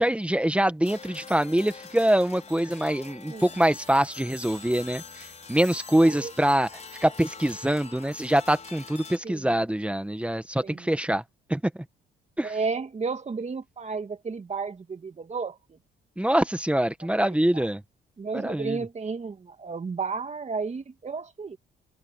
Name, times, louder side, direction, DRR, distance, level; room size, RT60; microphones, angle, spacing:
voice 1, 0.0-5.0 5.5-6.7 7.0-11.2 11.5-11.8 12.4-12.5 16.2-17.8 18.3-18.8, right 1 dB, 5° right, 1.7 m, -24 dB
sound 1, 0.8-9.2, left 4 dB, 35° left, 5.0 m, -44 dB
voice 2, 6.0-6.3 9.2-9.6 10.6-10.9 12.4-15.8 17.2-17.3 17.5-17.7 18.2-21.6, right 4 dB, 35° right, 2.2 m, -33 dB
cardioid pair, 90°, 20 cm